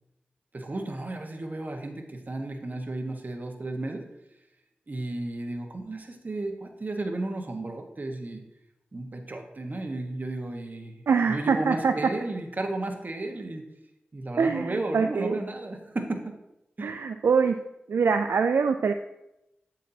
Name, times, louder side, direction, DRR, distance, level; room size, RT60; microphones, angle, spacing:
voice 1, 0.5-4.0 4.9-8.4 8.9-13.6 14.1-16.4 16.8-16.9, right 2 dB, 45° right, 3 dB, 1.3 m, -33 dB
voice 2, 11.1-11.9 14.4-15.4 16.8-17.6 17.9-18.9, right 5 dB, 80° right, 7 dB, 0.3 m, -24 dB
8.2 x 7.3 x 2.8 m, 0.87 s
cardioid pair, 45°, 4 cm